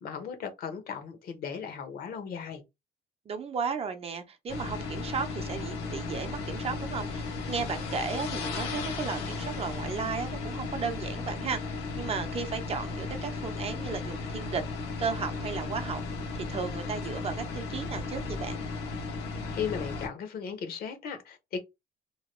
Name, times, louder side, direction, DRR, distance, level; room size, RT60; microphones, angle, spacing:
voice 1, 0.0-2.6 19.5-21.6, left 7 dB, 60° left, 0.9 m, -36 dB
voice 2, 3.3-14.6 15.0-16.0 16.3-18.6, right 5 dB, 35° right, 0.6 m, -35 dB
sound 1, 4.5-20.1, left 3 dB, 85° left, 1.1 m, -35 dB
2.9 x 2.2 x 2.9 m
cardioid pair, 110°, 17 cm